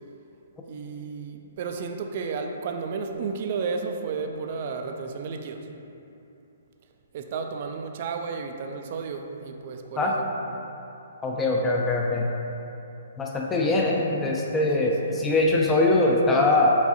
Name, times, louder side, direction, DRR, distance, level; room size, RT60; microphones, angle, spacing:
voice 1, 0.7-5.7 7.1-10.3 14.8-15.2, right 5 dB, 45° right, 5 dB, 0.4 m, -33 dB
voice 2, 11.2-12.3 13.2-16.8, left 2 dB, 15° left, -2 dB, 0.4 m, -22 dB
4.6 x 3.9 x 2.8 m, 2.8 s
figure-of-eight pair, 125°, 0 cm